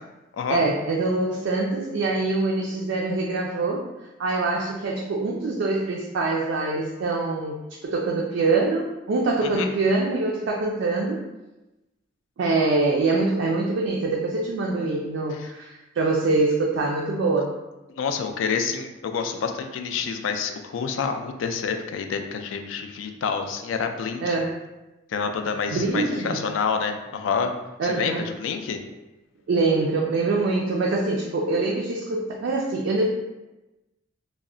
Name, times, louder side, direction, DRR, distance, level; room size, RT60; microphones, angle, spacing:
voice 1, 0.5-3.8 4.2-11.2 12.4-17.5 24.2-24.5 25.7-26.4 27.8-28.3 29.5-33.0, right 3 dB, 75° right, -1 dB, 0.3 m, -24 dB
voice 2, 17.9-24.4 25.1-27.5 27.8-28.8, left 6 dB, 90° left, 6 dB, 0.3 m, -28 dB
2.4 x 2.0 x 3.6 m, 1.0 s
head